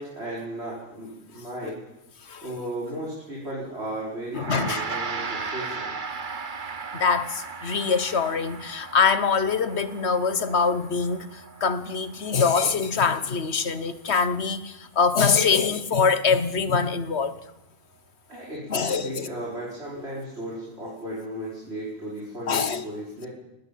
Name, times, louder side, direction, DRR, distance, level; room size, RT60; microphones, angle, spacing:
voice 1, 0.0-1.8 2.4-5.9 18.3-23.3, right 1 dB, 80° right, 5.5 m, -35 dB
voice 2, 4.3-4.8 6.9-17.3 18.7-19.3 22.5-22.8, left 5 dB, 80° left, 1.5 m, -24 dB
Gong, 4.3-13.9, right 4 dB, 50° right, 1.3 m, -37 dB
20.0 x 18.5 x 8.5 m
omnidirectional pair, 1.1 m